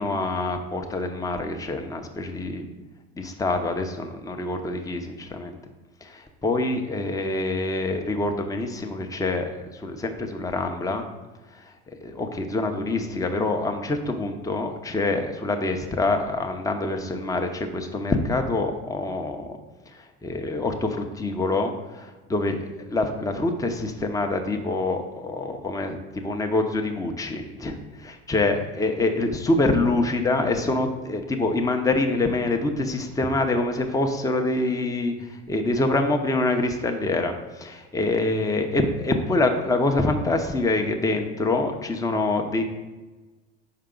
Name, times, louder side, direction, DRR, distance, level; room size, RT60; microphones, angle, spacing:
voice 1, 0.0-2.7 3.2-5.6 6.0-11.0 12.0-19.5 19.9-26.0 26.2-42.6, left 2 dB, 10° left, 4 dB, 0.7 m, -25 dB
5.7 x 4.7 x 3.8 m, 1.2 s
hypercardioid pair, 85°, 33 cm